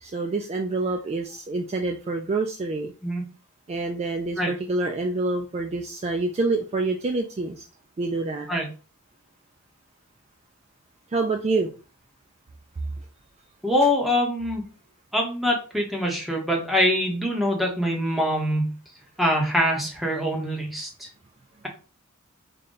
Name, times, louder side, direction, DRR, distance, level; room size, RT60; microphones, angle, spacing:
voice 1, 0.0-2.9 3.7-7.7 8.0-8.5 11.1-11.7, right 3 dB, 30° right, 3 dB, 0.3 m, -27 dB
voice 2, 13.6-14.6 15.1-18.7 19.2-21.1, left 1 dB, ahead, 0 dB, 0.8 m, -24 dB
3.7 x 2.2 x 3.7 m, 0.36 s
head